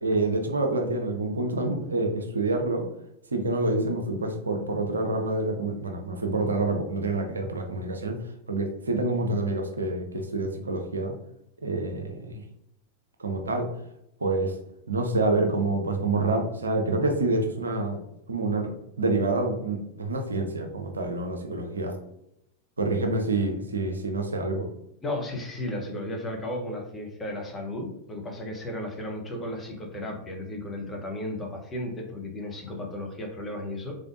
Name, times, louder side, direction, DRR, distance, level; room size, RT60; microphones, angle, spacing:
voice 1, 0.0-2.9 3.3-8.2 8.5-11.1 11.6-12.4 13.2-13.7 14.2-14.5 14.9-18.0 18.3-18.7 19.0-21.9 22.8-24.7, right 2 dB, 75° right, 3 dB, 0.6 m, -27 dB
voice 2, 25.0-34.0, left 1 dB, 15° left, 0 dB, 1.0 m, -34 dB
3.7 x 3.3 x 2.6 m, 0.82 s
figure-of-eight pair, 90°, 0 cm